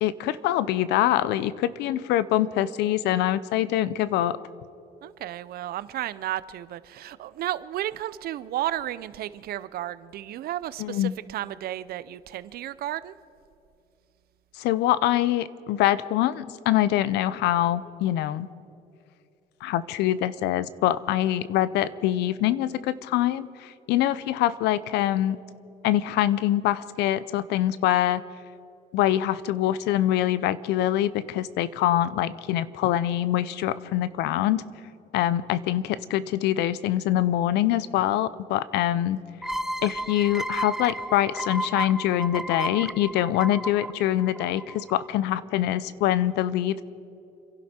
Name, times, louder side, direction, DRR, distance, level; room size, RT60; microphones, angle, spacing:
voice 1, 0.0-4.4 10.8-11.1 14.6-18.5 19.6-25.4 25.8-28.2 28.9-34.6 35.1-39.2 39.8-46.8, left 13 dB, 85° left, 17 dB, 0.7 m, -24 dB
voice 2, 5.0-13.2, right 13 dB, 65° right, 16 dB, 0.6 m, -33 dB
sound 1, 39.4-44.9, right 1 dB, ahead, 0.5 m, -33 dB
29.0 x 11.5 x 4.4 m, 2.7 s
cardioid pair, 110°, 17 cm